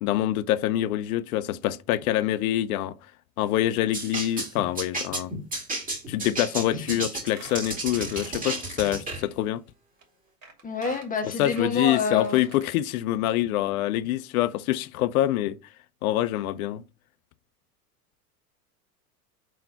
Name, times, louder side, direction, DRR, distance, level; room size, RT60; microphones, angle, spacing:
voice 1, 0.0-3.0 3.4-5.3 6.1-9.6 11.2-15.6 16.0-16.8, left 13 dB, 65° left, 0.6 m, -25 dB
sound 1, 3.9-9.2, right 2 dB, 20° right, 2.0 m, -32 dB
Squeak, 6.7-6.9 7.2-8.8 9.1-9.2 10.0-10.1 10.4-12.7 13.1-13.2 13.4-13.5, right 4 dB, 40° right, 2.6 m, -47 dB
voice 2, 10.6-12.4, left 4 dB, 15° left, 1.4 m, -28 dB
5.0 x 3.9 x 5.6 m
hypercardioid pair, 95°, 46 cm